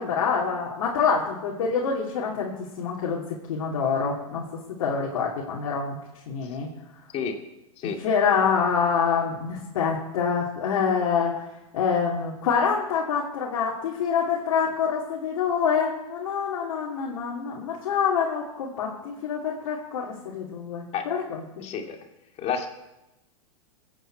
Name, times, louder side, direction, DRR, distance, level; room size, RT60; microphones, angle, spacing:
voice 1, 0.0-2.5 2.8-3.2 3.5-6.0 6.3-6.7 8.0-11.3 11.7-21.6, left 6 dB, 65° left, -3 dB, 2.9 m, -26 dB
voice 2, 21.6-22.0 22.4-22.7, left 7 dB, 35° left, 3 dB, 2.4 m, -29 dB
22.0 x 9.2 x 4.7 m, 0.95 s
hypercardioid pair, 105°, 18 cm